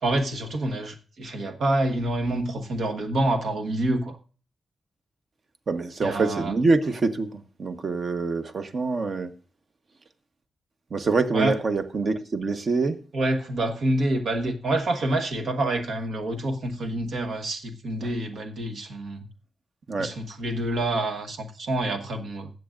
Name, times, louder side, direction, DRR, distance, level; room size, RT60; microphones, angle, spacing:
voice 1, 0.0-4.2 6.0-6.6 11.3-11.6 13.1-19.3 20.0-22.5, right 1 dB, 80° right, 1.2 m, -27 dB
voice 2, 5.7-9.3 10.9-13.0 19.9-20.1, right 3 dB, 55° right, 1.1 m, -25 dB
20.5 x 7.7 x 2.5 m
cardioid pair, 90°, 0 cm